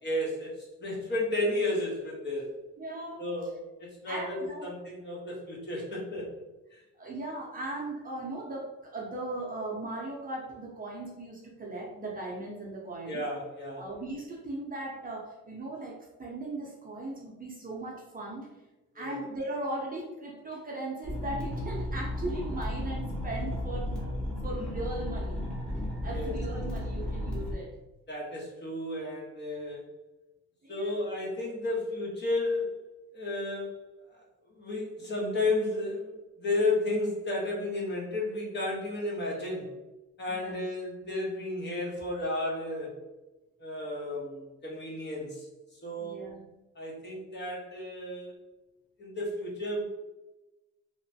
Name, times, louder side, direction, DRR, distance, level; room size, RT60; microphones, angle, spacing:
voice 1, 0.0-2.5 3.2-3.5 3.8-6.3 6.7-6.8 13.1-13.8 19.0-19.2 26.1-26.3 28.1-29.8 30.7-32.8 33.1-33.8 34.1-34.2 34.5-39.7 40.2-43.0 43.6-46.2 46.7-48.3 49.0-49.8, left 2 dB, 35° left, -3 dB, 1.0 m, -33 dB
voice 2, 2.8-3.2 4.1-4.7 6.9-13.2 13.8-18.5 18.9-24.1 24.4-25.4 26.0-27.7 30.6-31.0 40.3-40.6 41.0-41.1 46.0-46.4, right 2 dB, 30° right, -3 dB, 0.7 m, -38 dB
sound 1, 21.0-27.5, left 1 dB, 5° left, 0.9 m, -34 dB
3.0 x 2.1 x 2.7 m, 1.1 s
cardioid pair, 90°, 30 cm